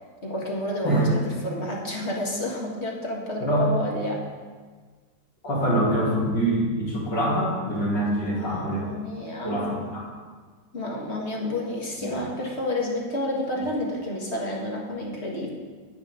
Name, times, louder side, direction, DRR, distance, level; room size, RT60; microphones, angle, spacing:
voice 1, 0.2-4.2 8.2-9.6 10.7-15.5, left 1 dB, 40° left, -2 dB, 1.7 m, -30 dB
voice 2, 5.4-8.9 9.4-10.1 12.0-12.2, right 1 dB, 75° left, -6 dB, 3.6 m, -24 dB
9.9 x 9.7 x 3.7 m, 1.5 s
omnidirectional pair, 1.9 m